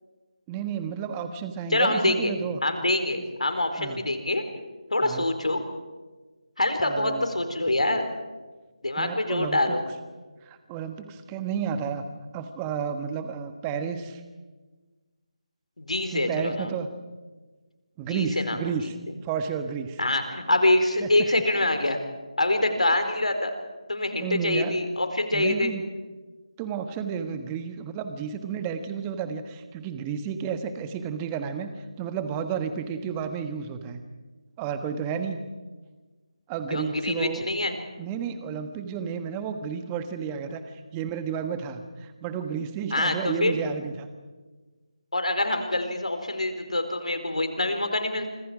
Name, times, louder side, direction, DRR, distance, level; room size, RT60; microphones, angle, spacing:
voice 1, 0.5-2.6 3.2-3.3 3.8-4.2 5.0-5.3 6.8-7.3 9.0-9.7 10.4-12.1 12.3-14.2 16.1-16.9 18.0-19.0 19.2-20.0 21.0-21.1 24.2-24.7 25.3-25.8 26.6-31.7 32.0-34.0 34.6-35.4 36.5-37.4 38.0-44.1, right 7 dB, 15° right, 9 dB, 1.4 m, -32 dB
voice 2, 1.7-2.3 2.6-4.4 4.9-5.6 6.6-8.0 8.8-9.8 15.8-16.7 18.1-18.6 20.0-22.0 22.4-23.5 23.9-25.7 36.7-37.7 42.9-43.5 45.1-48.3, left 2 dB, 85° left, 7 dB, 4.1 m, -25 dB
28.0 x 26.0 x 5.1 m, 1.3 s
figure-of-eight pair, 160°, 3 cm